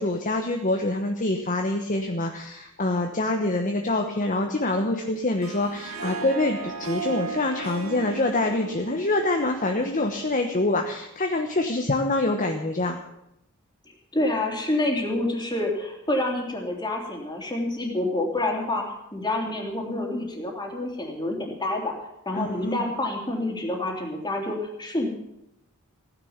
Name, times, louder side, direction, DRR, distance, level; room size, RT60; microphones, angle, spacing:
voice 1, 0.0-13.0 22.3-22.8, left 2 dB, 35° left, 4 dB, 1.1 m, -25 dB
Harp, 5.2-10.4, right 4 dB, 75° right, 3.0 m, -36 dB
voice 2, 13.9-21.9 22.2-25.1, left 1 dB, 20° left, 1 dB, 3.3 m, -28 dB
16.0 x 10.5 x 7.2 m, 0.83 s
head